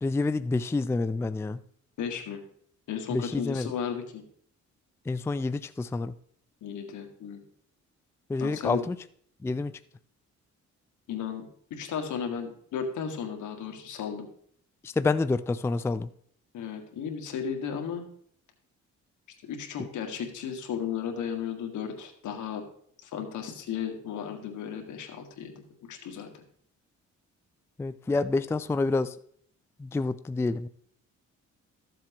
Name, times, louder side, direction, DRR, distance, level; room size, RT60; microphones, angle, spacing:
voice 1, 0.0-1.6 3.1-3.7 5.1-6.1 8.3-9.0 9.4-9.7 14.8-16.1 27.8-29.1 29.8-30.7, left 3 dB, 10° left, 12 dB, 0.4 m, -28 dB
voice 2, 2.0-2.4 2.9-4.2 6.6-7.4 8.4-8.8 11.1-11.4 11.7-14.3 16.5-18.0 19.5-22.6 23.0-25.6 25.9-26.3, left 7 dB, 75° left, 4 dB, 1.8 m, -34 dB
13.5 x 7.5 x 3.0 m, 0.62 s
cardioid pair, 90°, 30 cm